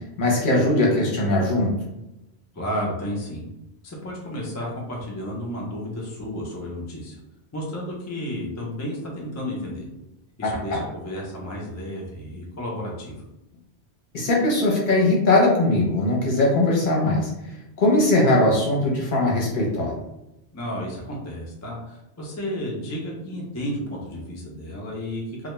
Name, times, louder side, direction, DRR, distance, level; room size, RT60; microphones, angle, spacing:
voice 1, 0.2-1.7 10.4-10.8 14.1-17.3 17.8-20.0, left 2 dB, 55° left, -3 dB, 0.8 m, -20 dB
voice 2, 2.5-3.4 3.8-7.2 7.5-9.9 10.4-13.2 20.5-25.5, equal, 25° left, -3 dB, 0.3 m, -32 dB
2.2 x 2.2 x 2.9 m, 0.90 s
omnidirectional pair, 1.1 m